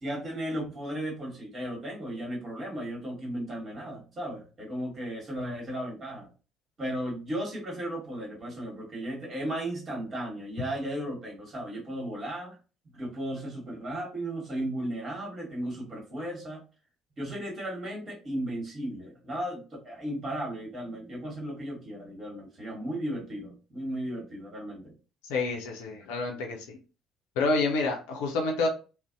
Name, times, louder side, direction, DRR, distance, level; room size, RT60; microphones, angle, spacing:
voice 1, 0.0-6.3 6.8-12.5 12.8-16.6 17.2-24.9, right 1 dB, 40° right, -1 dB, 1.3 m, -35 dB
voice 2, 25.2-26.8 27.4-28.7, left 3 dB, 70° left, 1 dB, 0.4 m, -28 dB
2.5 x 2.0 x 2.4 m, 0.34 s
figure-of-eight pair, 50°, 0 cm